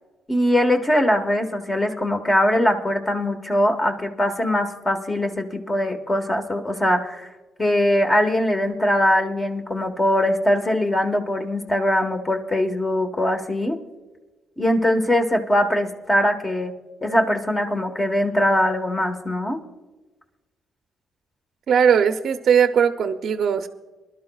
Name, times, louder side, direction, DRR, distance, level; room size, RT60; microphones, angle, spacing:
voice 1, 0.3-7.3 7.6-13.8 14.6-16.7 17.0-19.6, left 1 dB, 20° left, 5 dB, 1.3 m, -21 dB
voice 2, 21.7-23.7, right 7 dB, 60° right, 7 dB, 0.6 m, -19 dB
23.5 x 12.0 x 2.3 m, 1.2 s
cardioid pair, 90°, 0 cm